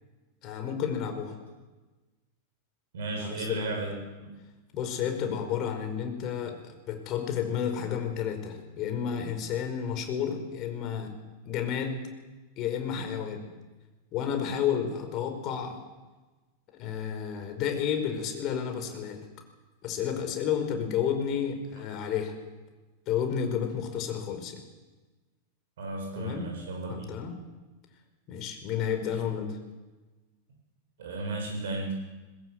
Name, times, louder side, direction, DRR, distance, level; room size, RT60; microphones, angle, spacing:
voice 1, 0.4-1.3 3.2-3.8 4.7-11.1 11.4-12.0 12.6-13.5 14.1-15.8 16.8-19.3 19.8-22.3 23.1-24.6 26.2-26.5 26.9-27.3 28.3-29.6, left 8 dB, 40° left, 6 dB, 5.1 m, -31 dB
voice 2, 2.9-3.9 4.2-4.3 25.8-27.0 31.0-31.9, right 2 dB, 60° right, 1 dB, 7.8 m, -34 dB
22.0 x 21.0 x 8.1 m, 1.2 s
figure-of-eight pair, 90°, 0 cm